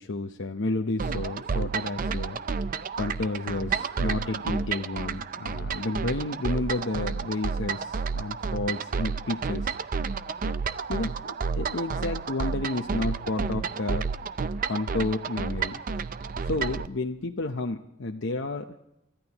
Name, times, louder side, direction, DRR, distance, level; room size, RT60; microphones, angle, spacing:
voice 1, 0.0-2.4 3.0-9.7 10.9-14.1 14.7-15.8 16.4-18.8, left 2 dB, 55° left, 3 dB, 0.7 m, -31 dB
sound 1, 1.0-16.9, right 5 dB, 40° right, 0.5 m, -31 dB
29.0 x 14.0 x 3.0 m, 0.86 s
head